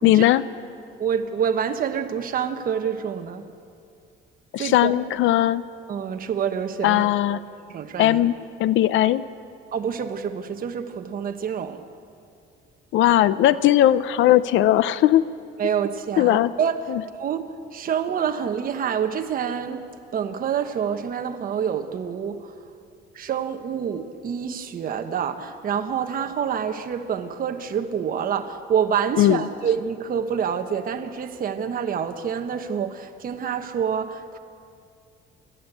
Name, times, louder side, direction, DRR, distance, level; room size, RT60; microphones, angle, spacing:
voice 1, 0.0-0.4 4.5-5.6 6.8-7.4 8.0-8.3 8.6-9.2 12.9-15.3 16.2-16.5 16.9-17.0 29.2-29.4, left 13 dB, 75° left, 16 dB, 0.6 m, -18 dB
voice 2, 1.0-3.5 4.6-4.9 5.9-7.4 7.7-8.2 9.7-11.8 15.6-16.8 17.2-19.8 20.1-22.5 23.1-34.4, right 7 dB, 45° right, 6 dB, 1.2 m, -27 dB
28.5 x 11.5 x 8.2 m, 2.4 s
cardioid pair, 140°, 20 cm